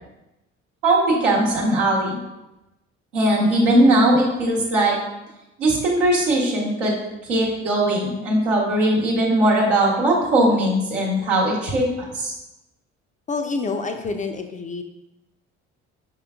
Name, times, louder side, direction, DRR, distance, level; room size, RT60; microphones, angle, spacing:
voice 1, 0.8-2.2 3.1-5.0 5.6-7.0 7.2-11.8 12.1-12.3, right 1 dB, 85° right, -4 dB, 1.0 m, -19 dB
voice 2, 13.3-14.8, left 4 dB, 25° left, 5 dB, 0.3 m, -27 dB
4.9 x 3.8 x 2.3 m, 0.95 s
hypercardioid pair, 50°, 35 cm